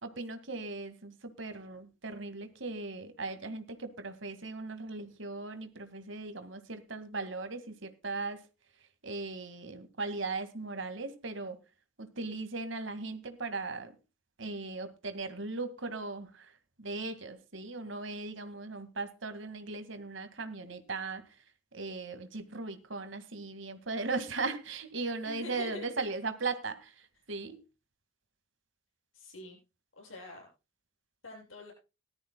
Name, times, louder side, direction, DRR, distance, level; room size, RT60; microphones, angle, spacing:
voice 1, 0.0-8.4 9.0-11.6 12.0-14.0 14.4-16.5 16.8-21.2 21.7-27.6, right 3 dB, 70° right, 9 dB, 2.0 m, -38 dB
voice 2, 25.0-25.9 29.1-29.6 30.0-30.5 31.2-31.7, left 1 dB, 85° left, 0 dB, 7.5 m, -46 dB
18.5 x 13.0 x 2.2 m, 0.29 s
head